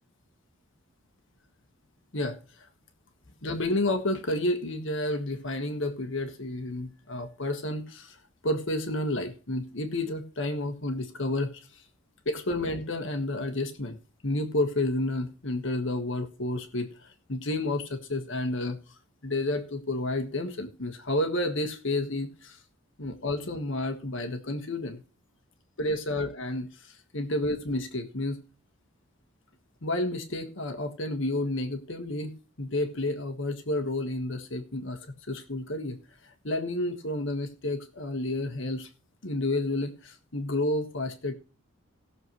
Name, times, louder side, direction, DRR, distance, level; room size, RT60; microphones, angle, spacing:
voice 1, 2.1-2.7 3.4-11.8 12.2-14.0 14.2-18.8 19.2-22.6 23.0-25.0 25.8-28.4 29.8-36.0 36.2-38.9 39.2-41.3, left 1 dB, 60° left, 5 dB, 1.5 m, -31 dB
19.0 x 6.8 x 3.1 m, 0.37 s
head